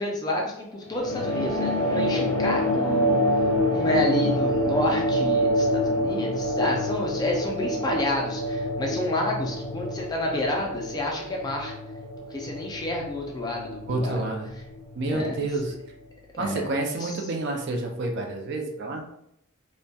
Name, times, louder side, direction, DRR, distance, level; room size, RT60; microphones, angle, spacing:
voice 1, 0.0-3.1 3.7-11.7 12.3-14.2 15.1-15.4 16.3-16.7 17.0-17.2, left 1 dB, 20° left, -1 dB, 0.3 m, -29 dB
sound 1, 0.9-15.8, equal, 90° left, 0.4 m, -27 dB
voice 2, 13.9-14.5 14.9-15.7 16.4-19.0, right 2 dB, 50° right, 2 dB, 0.4 m, -29 dB
2.2 x 2.1 x 2.7 m, 0.75 s
head